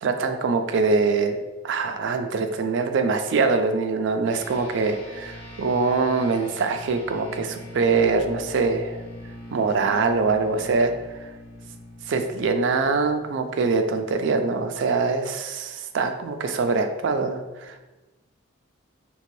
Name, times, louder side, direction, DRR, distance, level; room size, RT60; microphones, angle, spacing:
voice 1, 0.0-9.0 9.5-10.9 11.2-11.3 12.1-17.8, right 4 dB, 70° right, 7 dB, 0.3 m, -23 dB
sound 1, 4.3-14.0, left 1 dB, 35° left, 0.6 m, -42 dB
3.2 x 2.8 x 2.6 m, 1.1 s
head